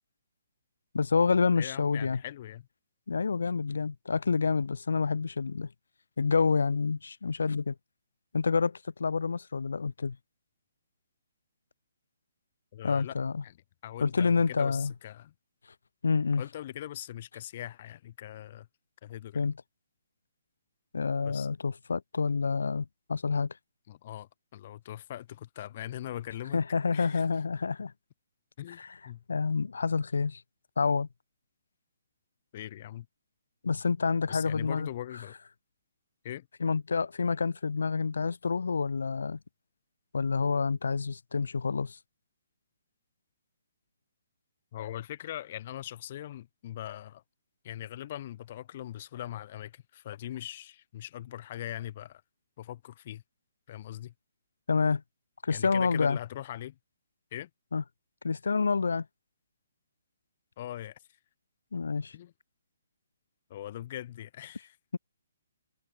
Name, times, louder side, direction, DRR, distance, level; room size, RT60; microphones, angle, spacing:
voice 1, 0.9-2.2 3.1-5.7 6.2-7.7 8.3-10.2 12.8-13.4 14.0-14.9 16.0-16.4 19.3-19.5 20.9-23.5 26.5-27.9 28.8-28.9 29.3-30.4 30.8-31.1 33.6-34.9 36.6-39.4 40.1-42.0 54.7-55.0 55.4-56.2 57.7-57.8 58.2-59.1 61.7-62.1, left 5 dB, 70° left, 0.5 m, -28 dB
voice 2, 1.6-2.7 12.7-13.2 13.4-13.6 13.8-15.3 16.4-18.7 19.0-19.4 21.2-21.5 23.9-26.6 26.9-27.2 28.6-29.2 32.5-33.1 34.3-35.3 36.2-36.5 44.7-47.2 47.6-52.2 52.6-53.2 53.7-54.1 55.5-56.8 57.3-57.5 60.6-61.0 62.1-62.3 63.5-64.8, left 12 dB, 45° left, 3.8 m, -41 dB
figure-of-eight pair, 135°, 0 cm